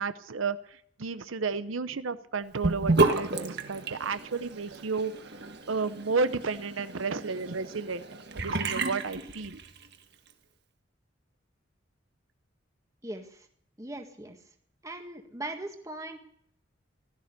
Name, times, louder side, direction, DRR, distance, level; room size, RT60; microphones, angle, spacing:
voice 1, 0.0-8.0 8.3-9.6, right 4 dB, 85° right, 12 dB, 0.8 m, -32 dB
Sink (filling or washing) / Bathtub (filling or washing), 2.6-9.9, right 3 dB, 55° right, 1.5 m, -31 dB
voice 2, 13.0-13.5 13.8-14.4 14.8-16.2, right 1 dB, 15° right, 5 dB, 1.7 m, -39 dB
16.0 x 13.0 x 6.8 m, 0.67 s
head